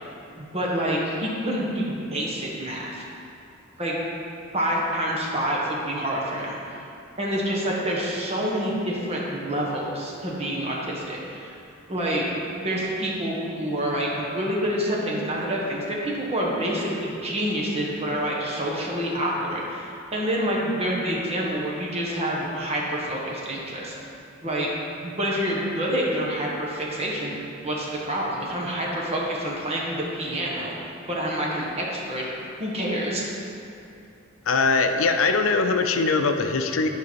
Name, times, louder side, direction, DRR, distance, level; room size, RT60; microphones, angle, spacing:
voice 1, 0.4-3.0 3.8-4.0 4.5-6.6 7.2-11.5 11.9-12.3 12.6-23.9 24.4-24.7 25.0-30.7 31.1-32.3 32.6-33.2, equal, 30° right, -4 dB, 1.5 m, -27 dB
voice 2, 34.5-36.9, left 4 dB, 75° left, 6 dB, 0.5 m, -21 dB
11.0 x 5.1 x 4.7 m, 2.7 s
head